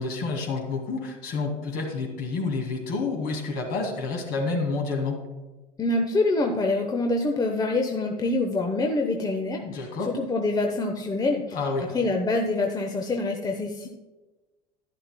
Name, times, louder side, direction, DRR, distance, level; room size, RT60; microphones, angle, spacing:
voice 1, 0.0-5.2 9.6-10.1 11.5-11.9, left 3 dB, 55° left, 2 dB, 2.3 m, -29 dB
voice 2, 5.8-13.9, left 2 dB, 20° left, 3 dB, 1.0 m, -26 dB
11.0 x 11.0 x 2.2 m, 1.2 s
hypercardioid pair, 75°, 20 cm